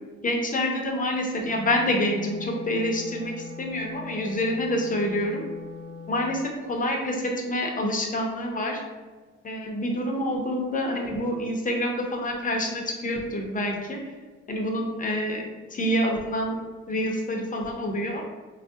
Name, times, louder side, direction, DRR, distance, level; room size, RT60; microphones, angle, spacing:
voice 1, 0.2-3.3 3.6-5.4 6.1-8.8 9.4-14.0 14.5-16.6 16.9-18.2, left 1 dB, 25° left, 2 dB, 0.6 m, -27 dB
Wind instrument woodwind instrument, 1.3-6.4, left 3 dB, 75° right, 0.4 m, -41 dB
3.3 x 2.4 x 2.7 m, 1.3 s
cardioid pair, 90°, 30 cm